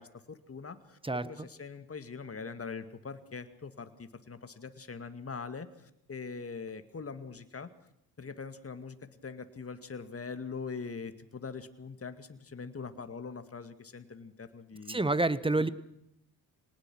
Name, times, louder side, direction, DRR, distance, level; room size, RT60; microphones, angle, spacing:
voice 1, 0.0-7.7 8.2-9.0 9.2-15.0 15.6-15.7, left 5 dB, 30° left, 9 dB, 2.1 m, -42 dB
voice 2, 1.0-1.5 14.9-15.7, right 2 dB, 10° right, 15 dB, 1.3 m, -28 dB
23.0 x 19.0 x 6.2 m, 0.78 s
hypercardioid pair, 55°, 45 cm